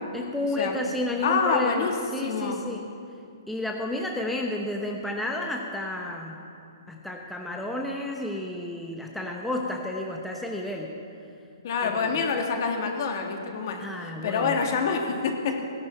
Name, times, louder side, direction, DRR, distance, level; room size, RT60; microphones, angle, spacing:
voice 1, 0.1-2.8 3.5-6.4 6.9-10.9 11.8-12.3 13.8-14.6, left 1 dB, ahead, 0 dB, 0.8 m, -31 dB
voice 2, 1.2-1.9 2.2-2.6 11.6-13.8 14.2-15.5, left 5 dB, 50° left, 3 dB, 1.9 m, -26 dB
17.5 x 11.0 x 4.5 m, 2.5 s
hypercardioid pair, 150°, 2 cm